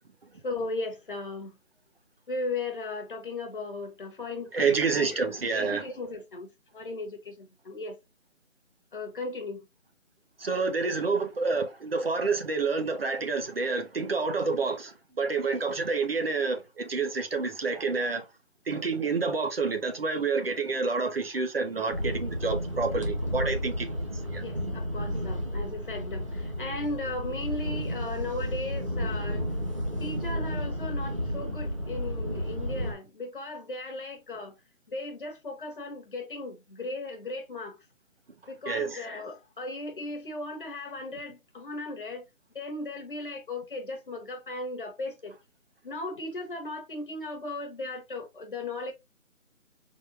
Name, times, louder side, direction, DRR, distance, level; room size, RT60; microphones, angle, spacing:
voice 1, 0.4-1.5 2.3-4.5 4.9-8.0 8.9-9.6 24.4-29.4 30.0-34.5 34.9-37.8 38.5-42.2 42.5-45.3 45.8-48.9, left 2 dB, 40° left, 1.1 m, -37 dB
voice 2, 4.5-5.9 10.4-18.2 18.7-24.0 24.3-24.4 38.6-39.0, right 4 dB, 45° right, 1.1 m, -28 dB
sound 1, 21.9-32.9, equal, 25° right, 0.7 m, -32 dB
4.1 x 3.4 x 2.5 m
figure-of-eight pair, 160°, 40 cm